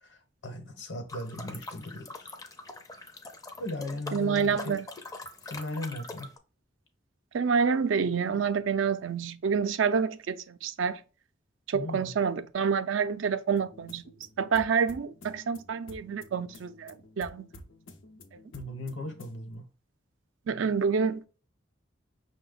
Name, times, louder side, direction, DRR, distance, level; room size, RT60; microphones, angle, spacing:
voice 1, 0.0-2.4 3.6-4.8 5.4-6.3 11.7-12.1 18.5-19.7, left 1 dB, 70° left, 1.0 m, -38 dB
sound 1, 1.1-6.4, left 2 dB, 20° left, 0.4 m, -43 dB
voice 2, 4.1-4.8 7.3-11.0 11.7-14.0 14.4-17.5 20.5-21.3, right 6 dB, 80° right, 0.4 m, -28 dB
sound 2, 13.6-19.5, left 1 dB, 85° left, 0.7 m, -51 dB
5.7 x 2.2 x 3.8 m
head